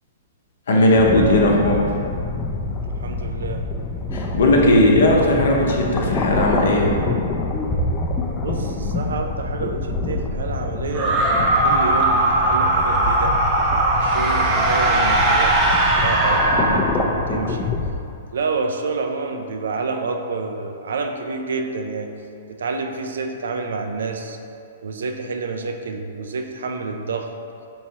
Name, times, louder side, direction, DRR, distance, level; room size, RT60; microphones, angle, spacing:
voice 1, 0.7-1.9 4.1-6.9, left 1 dB, 70° left, -1 dB, 0.7 m, -17 dB
sound 1, 1.0-17.9, left 3 dB, 20° left, 0.4 m, -26 dB
voice 2, 2.8-3.6 8.4-13.3 14.0-15.7 16.0-17.7 18.3-22.1 22.6-24.4 24.8-27.3, right 4 dB, 75° right, 5 dB, 0.3 m, -28 dB
sound 2, 10.9-17.4, right 2 dB, 25° right, 0.6 m, -19 dB
4.3 x 3.1 x 2.8 m, 2.5 s
hypercardioid pair, 120°, 0 cm